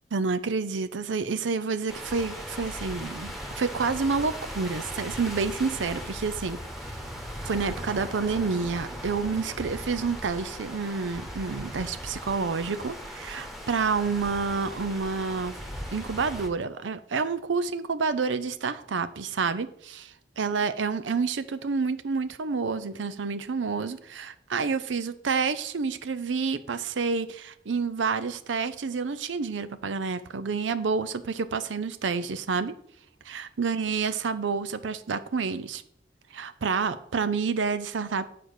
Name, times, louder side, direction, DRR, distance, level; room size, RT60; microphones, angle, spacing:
voice 1, 0.1-6.9 7.4-15.5 15.9-20.1 20.4-32.7 33.2-35.8 36.3-38.3, right 5 dB, 85° right, 12 dB, 0.6 m, -29 dB
sound 1, 1.9-16.5, equal, ahead, 1.2 m, -38 dB
8.7 x 4.6 x 6.6 m, 0.68 s
head